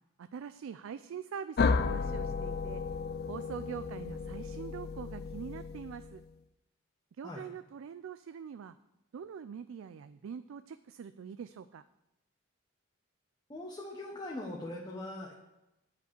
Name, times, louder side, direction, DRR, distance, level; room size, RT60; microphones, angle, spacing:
voice 1, 0.2-2.8 3.3-6.2 7.2-8.7 9.1-11.8, right 7 dB, 70° right, 12 dB, 0.3 m, -44 dB
sound 1, 1.6-6.3, left 4 dB, 50° left, 0.4 m, -33 dB
voice 2, 13.5-15.3, left 1 dB, 20° left, -2 dB, 1.0 m, -41 dB
9.0 x 5.3 x 7.9 m, 0.94 s
head